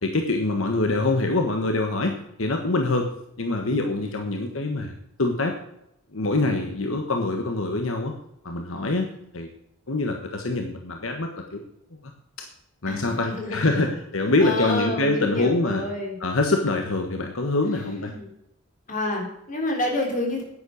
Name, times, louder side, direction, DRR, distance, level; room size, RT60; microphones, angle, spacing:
voice 1, 0.0-3.1 3.4-5.6 6.1-8.1 8.4-9.1 9.3-9.5 9.9-11.6 12.4-12.5 12.8-15.8 16.2-18.1, left 2 dB, 75° left, 4 dB, 1.4 m, -25 dB
voice 2, 12.9-13.8 14.4-16.2 17.7-18.3 18.9-20.4, left 1 dB, 40° left, 1 dB, 3.9 m, -29 dB
10.5 x 9.7 x 6.5 m, 0.79 s
head